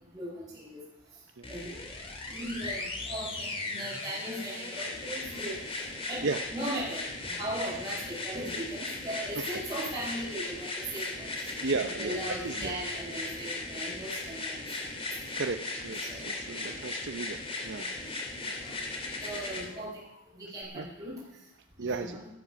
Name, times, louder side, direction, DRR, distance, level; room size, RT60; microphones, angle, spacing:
voice 1, 0.1-0.8 1.5-1.8 2.3-5.6 6.1-11.5 11.8-14.9 16.1-16.8 18.0-18.3 18.6-18.8 19.2-21.1 21.8-22.3, right 1 dB, 15° right, -8 dB, 4.7 m, -38 dB
sound 1, 1.4-19.7 20.6-20.7, left 2 dB, 25° left, 2.6 m, -37 dB
voice 2, 9.2-9.6 11.5-12.2 12.4-12.7 15.4-17.9 18.4-18.6 20.7-20.9 21.8-22.2, right 3 dB, 55° right, 7 dB, 0.7 m, -35 dB
13.5 x 13.0 x 6.0 m, 0.89 s
head